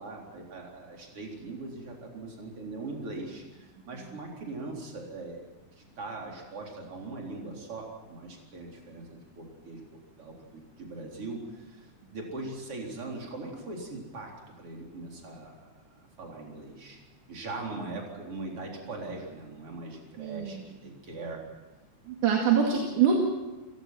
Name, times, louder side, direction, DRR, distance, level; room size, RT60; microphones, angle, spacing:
voice 1, 0.0-5.4 5.8-9.8 10.2-14.3 14.6-17.0 17.3-21.4, right 2 dB, 45° right, 0 dB, 4.9 m, -40 dB
voice 2, 20.2-20.6 22.1-23.2, right 7 dB, 80° right, 0 dB, 3.7 m, -24 dB
30.0 x 16.5 x 6.1 m, 1.1 s
omnidirectional pair, 3.6 m